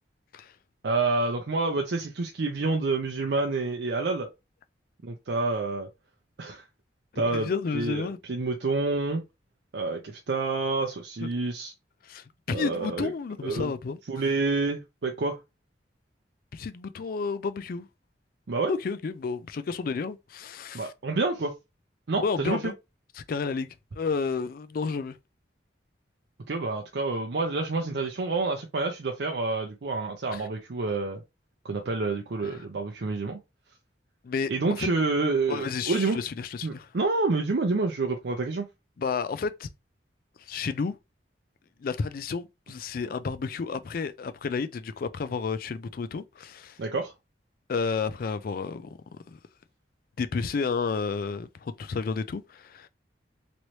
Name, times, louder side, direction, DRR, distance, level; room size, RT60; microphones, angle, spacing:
voice 1, 0.8-4.3 5.0-5.9 6.4-6.6 7.2-9.2 9.7-11.7 12.5-13.1 13.4-13.7 14.1-15.4 18.5-18.8 20.7-21.5 22.1-22.7 26.5-31.2 31.6-33.4 34.5-36.2 36.6-38.7 46.8-47.1, right 3 dB, 65° right, 0.5 m, -28 dB
voice 2, 7.1-8.2 11.2-11.3 12.0-14.0 16.5-17.9 18.7-20.9 22.2-22.7 23.2-25.2 30.3-30.5 32.5-32.7 34.2-34.9 35.5-36.9 39.0-39.7 40.4-41.0 41.8-46.8 47.7-48.9 49.3-49.4 50.2-52.9, left 5 dB, 50° left, 0.3 m, -31 dB
3.1 x 3.1 x 2.7 m
head